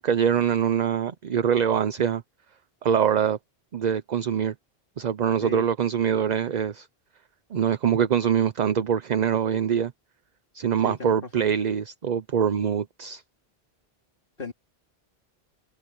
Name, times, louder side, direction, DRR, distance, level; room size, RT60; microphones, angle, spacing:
voice 1, 0.0-2.2 2.8-3.4 3.7-4.5 5.0-6.9 7.5-9.9 10.5-13.2, right 8 dB, 45° right, 0.7 m, -24 dB
voice 2, 10.8-11.5 14.4-14.5, left 2 dB, 60° left, 2.6 m, -36 dB
omnidirectional pair, 1.1 m